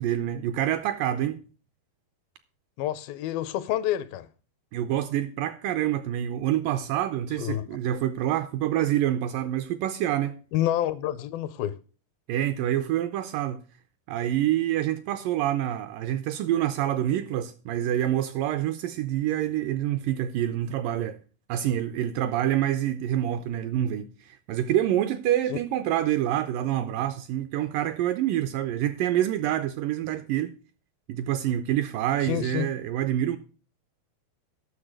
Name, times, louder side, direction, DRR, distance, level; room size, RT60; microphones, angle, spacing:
voice 1, 0.0-1.4 4.7-10.4 12.3-13.6 14.1-21.2 21.5-30.5 31.1-33.4, right 12 dB, 80° right, 2.0 m, -27 dB
voice 2, 2.8-4.3 7.4-7.7 10.5-11.8 25.5-25.6 32.2-32.7, left 12 dB, 80° left, 2.3 m, -28 dB
10.0 x 6.7 x 6.4 m
omnidirectional pair, 4.4 m